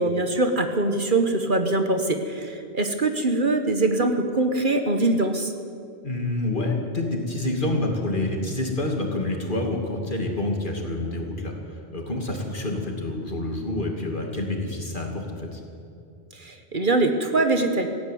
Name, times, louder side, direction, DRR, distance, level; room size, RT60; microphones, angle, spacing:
voice 1, 0.0-5.5 16.3-17.9, right 2 dB, 50° right, 6 dB, 1.6 m, -23 dB
voice 2, 6.0-15.6, left 2 dB, 50° left, 1 dB, 2.9 m, -28 dB
17.5 x 15.5 x 9.4 m, 2.5 s
omnidirectional pair, 1.1 m